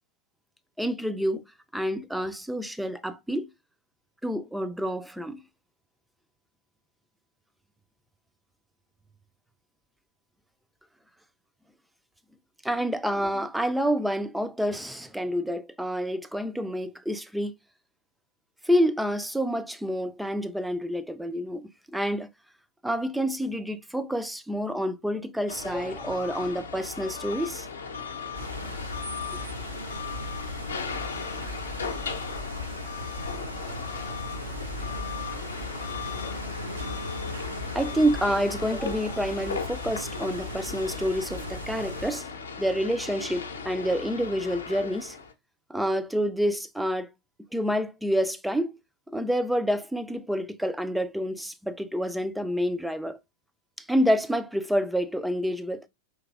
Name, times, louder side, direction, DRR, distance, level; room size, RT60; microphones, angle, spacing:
voice 1, 0.8-1.4 1.7-3.5 4.2-5.4 12.6-17.5 18.6-22.3 22.8-27.7 37.7-42.3 42.6-45.2 45.7-47.1 47.5-48.7 49.1-53.2 53.8-55.9, equal, 5° right, 0.4 m, -28 dB
sound 1, 25.5-45.3, left 5 dB, 70° left, 0.6 m, -37 dB
sound 2, 28.3-42.1, left 1 dB, 80° right, 2.1 m, -37 dB
4.6 x 3.1 x 2.3 m
figure-of-eight pair, 90°, 0 cm